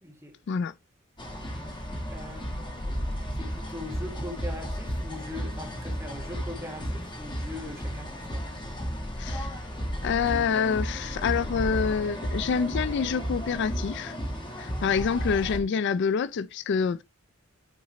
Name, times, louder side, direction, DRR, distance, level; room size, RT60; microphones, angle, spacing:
voice 1, 0.0-0.3 2.1-2.7 3.4-8.5, left 1 dB, 15° right, 1.7 m, -41 dB
sound 1, 1.2-15.6, equal, 20° left, 1.5 m, -33 dB
voice 2, 9.2-9.5 10.0-14.1 14.6-17.0, left 6 dB, 55° left, 0.3 m, -27 dB
8.6 x 3.7 x 3.2 m
head